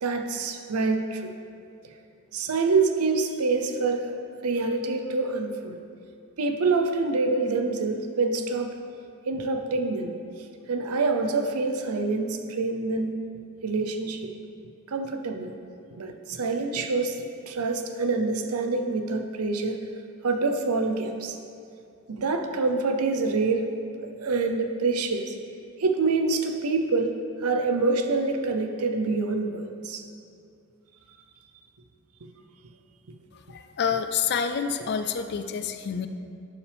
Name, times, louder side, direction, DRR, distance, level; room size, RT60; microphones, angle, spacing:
voice 1, 0.0-1.3 2.3-4.2 4.4-5.8 6.4-8.7 9.3-10.1 10.7-13.1 13.6-14.3 14.9-15.5 16.0-17.2 17.5-19.8 20.2-21.4 22.1-23.7 24.0-25.3 25.8-30.0, right 3 dB, 85° right, 5 dB, 0.7 m, -26 dB
voice 2, 33.5-36.1, left 7 dB, 50° left, 9 dB, 0.4 m, -28 dB
11.5 x 5.8 x 3.4 m, 2.4 s
head